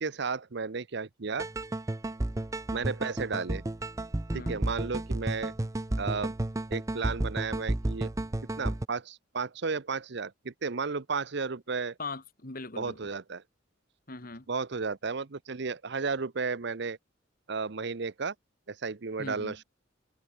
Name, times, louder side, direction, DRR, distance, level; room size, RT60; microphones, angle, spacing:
voice 1, 0.0-1.5 2.7-3.6 4.3-5.5 6.0-6.3 6.7-8.1 8.6-11.9 12.8-13.4 14.5-17.0 17.5-18.3 18.7-19.6, right 4 dB, 60° right, 0.8 m, -33 dB
sound 1, 1.4-8.9, right 1 dB, 15° right, 0.5 m, -32 dB
voice 2, 4.3-4.6 12.0-13.0 14.1-14.5 19.2-19.6, left 3 dB, 45° left, 2.5 m, -40 dB
head